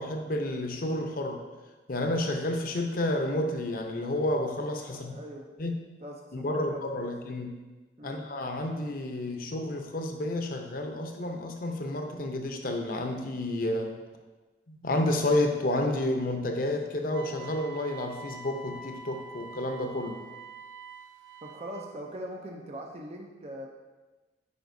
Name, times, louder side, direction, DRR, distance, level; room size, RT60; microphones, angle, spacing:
voice 1, 0.0-1.4 1.9-5.2 5.6-5.8 6.3-7.5 8.0-13.9 14.7-20.2, left 1 dB, 50° left, 4 dB, 0.7 m, -30 dB
voice 2, 4.9-5.6 6.0-7.1 8.0-8.2 21.4-23.7, equal, 35° right, 1 dB, 0.5 m, -41 dB
Wind instrument woodwind instrument, 17.1-21.9, right 4 dB, 90° right, 0.4 m, -45 dB
9.3 x 4.9 x 2.7 m, 1.2 s
head